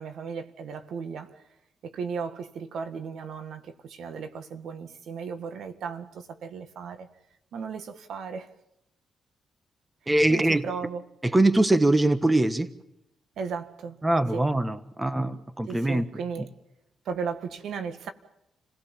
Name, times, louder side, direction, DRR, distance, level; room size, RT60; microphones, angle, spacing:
voice 1, 0.0-1.4 1.8-7.1 7.5-8.5 10.3-11.1 13.4-14.0 14.3-14.5 15.7-16.5 17.1-18.1, right 6 dB, 75° right, 2.0 m, -35 dB
voice 2, 10.1-10.6 11.3-12.7 14.0-16.0, right 1 dB, 15° right, 1.5 m, -22 dB
29.5 x 17.0 x 7.3 m
cardioid pair, 85°, 0 cm